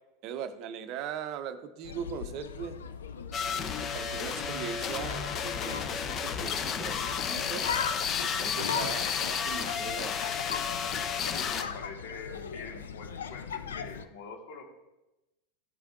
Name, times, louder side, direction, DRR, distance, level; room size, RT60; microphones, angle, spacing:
voice 1, 0.2-2.8 3.4-7.7 8.2-10.2, right 8 dB, 50° right, 11 dB, 0.6 m, -40 dB
sound 1, 1.8-14.1, left 6 dB, 80° left, 0.4 m, -39 dB
sound 2, 3.3-11.6, left 7 dB, 35° left, 0.7 m, -32 dB
voice 2, 11.3-14.6, left 4 dB, 60° left, 2 dB, 1.6 m, -45 dB
13.0 x 5.1 x 2.5 m, 0.99 s
hypercardioid pair, 90°, 0 cm